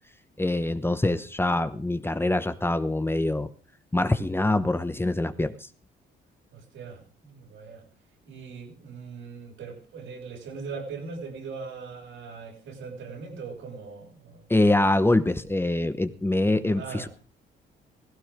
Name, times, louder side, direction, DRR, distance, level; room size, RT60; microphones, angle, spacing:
voice 1, 0.4-3.5 3.9-5.5 14.5-17.1, left 2 dB, 10° left, 1.0 m, -24 dB
voice 2, 6.5-7.9 8.2-14.5 16.7-17.1, right 5 dB, 80° right, 6.4 m, -40 dB
16.5 x 16.0 x 3.7 m
cardioid pair, 90°, 20 cm